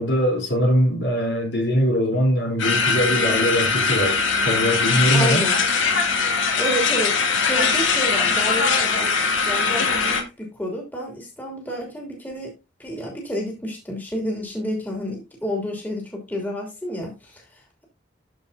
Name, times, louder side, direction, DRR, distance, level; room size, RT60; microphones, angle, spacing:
voice 1, 0.0-5.5, equal, 65° left, 3.9 m, -22 dB
sound 1, 2.6-10.2, left 5 dB, 90° left, 1.8 m, -21 dB
voice 2, 5.1-5.6 6.4-9.1 9.5-12.5 12.8-17.8, equal, 10° left, 3.0 m, -30 dB
13.5 x 5.3 x 2.8 m
head